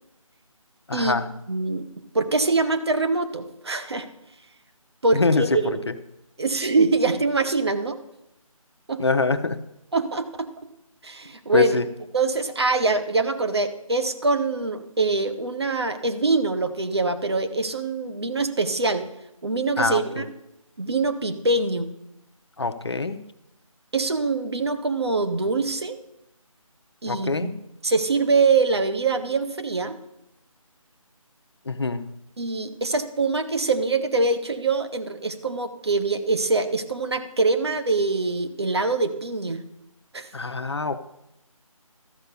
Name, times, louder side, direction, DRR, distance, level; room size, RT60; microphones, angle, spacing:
voice 1, 0.9-1.2 5.1-5.4 9.0-9.6 11.5-11.8 19.8-20.2 22.6-23.2 27.1-27.5 31.7-32.1 40.3-41.0, left 3 dB, 50° left, 10 dB, 0.6 m, -24 dB
voice 2, 1.5-1.9 2.1-4.1 5.0-5.7 6.4-8.0 8.9-9.0 9.9-10.5 11.0-11.8 12.1-19.0 19.4-20.2 20.8-21.9 23.9-26.0 27.0-27.5 27.8-30.0 32.4-39.6 40.1-40.3, right 3 dB, 45° right, 8 dB, 0.9 m, -24 dB
13.0 x 5.2 x 6.7 m, 0.85 s
figure-of-eight pair, 170°, 18 cm